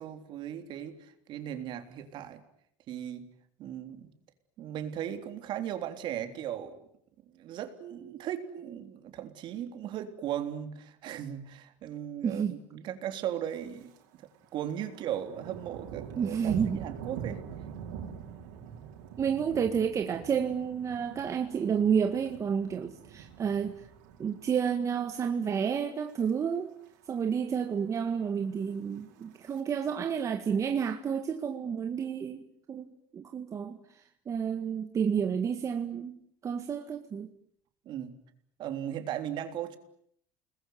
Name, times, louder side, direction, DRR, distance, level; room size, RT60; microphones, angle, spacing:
voice 1, 0.0-2.4 2.9-3.3 3.6-4.1 4.6-6.8 7.2-17.4 37.9-38.2 38.6-39.8, right 10 dB, 55° right, 3.6 m, -37 dB
voice 2, 12.2-12.6 16.2-16.8 19.2-23.9 24.2-26.7 27.1-32.9 33.1-37.3, right 7 dB, 30° right, 1.9 m, -30 dB
Thunder, 13.5-14.0 14.3-24.7 25.1-25.4 25.9-26.3 26.6-26.7 26.8-26.9 27.3-27.9 28.7-29.6, right 7 dB, 90° right, 5.1 m, -44 dB
29.5 x 21.0 x 9.5 m
supercardioid pair, 115°, 10 cm